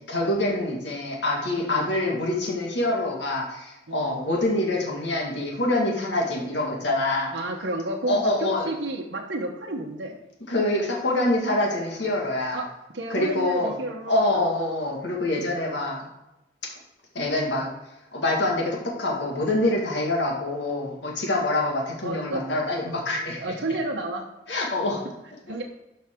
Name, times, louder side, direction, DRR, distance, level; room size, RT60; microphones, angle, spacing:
voice 1, 0.1-7.4 8.1-8.7 10.5-12.6 13.1-13.7 14.1-16.1 16.6-16.7 17.1-17.7 18.1-23.5 24.5-25.0, left 2 dB, 75° left, -1 dB, 1.9 m, -25 dB
voice 2, 1.6-1.9 3.9-4.2 7.3-10.1 12.5-12.7 12.9-14.5 15.3-15.6 22.0-22.4 23.4-24.2 25.4-25.6, right 1 dB, 85° right, 0 dB, 1.1 m, -31 dB
11.5 x 5.6 x 3.7 m, 0.95 s
head